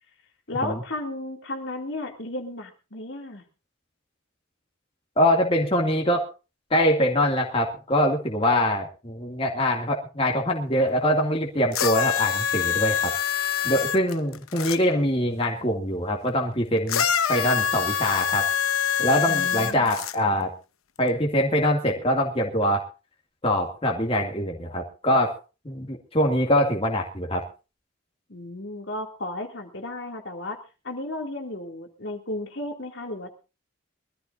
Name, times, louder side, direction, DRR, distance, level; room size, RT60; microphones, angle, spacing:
voice 1, 0.5-3.4 19.3-20.0 28.3-33.3, left 2 dB, 55° left, 3 dB, 2.5 m, -34 dB
voice 2, 5.2-6.2 6.7-13.1 13.6-17.0 17.3-18.5 19.0-20.5 21.0-22.9 23.4-25.3 25.6-27.4, equal, 25° left, 0 dB, 2.3 m, -23 dB
sound 1, 11.7-14.8 16.9-20.2 21.1-21.2, left 9 dB, 85° left, 1.0 m, -25 dB
23.5 x 14.0 x 2.6 m, 0.32 s
head